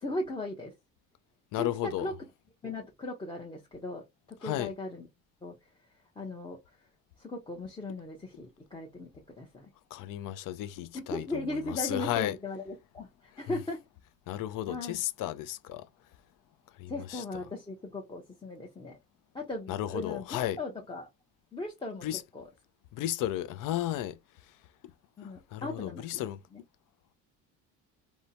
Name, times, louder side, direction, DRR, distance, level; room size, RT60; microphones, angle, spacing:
voice 1, 0.0-0.7 1.6-2.1 2.6-4.0 4.4-5.1 5.4-5.5 6.2-6.6 7.2-9.1 9.3-9.7 10.9-13.8 14.7-15.0 16.9-19.0 19.3-20.2 20.6-21.1 21.5-22.1 22.3-22.4 25.2-26.0 26.5-26.6, left 2 dB, 15° left, 0.6 m, -37 dB
voice 2, 1.5-2.1 4.4-4.7 9.9-12.4 13.3-13.6 14.3-15.9 16.7-17.4 19.7-20.6 22.0-22.2 22.9-24.6 25.2-26.4, left 13 dB, 55° left, 0.4 m, -34 dB
2.7 x 2.1 x 2.7 m
supercardioid pair, 85°, 39 cm